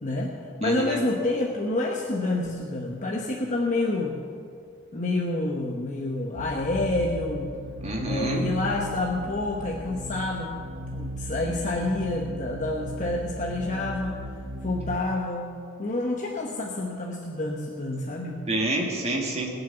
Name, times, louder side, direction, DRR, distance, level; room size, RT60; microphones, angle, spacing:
voice 1, 0.0-4.2 4.9-7.5 8.1-10.6 10.9-15.5 15.8-18.4, left 2 dB, 35° left, 0 dB, 1.0 m, -28 dB
voice 2, 0.6-1.0 7.8-8.5 18.5-19.5, right 1 dB, 30° right, -1 dB, 2.2 m, -28 dB
sound 1, 6.3-15.0, right 1 dB, 60° right, 1.2 m, -36 dB
20.5 x 7.0 x 6.8 m, 2.3 s
head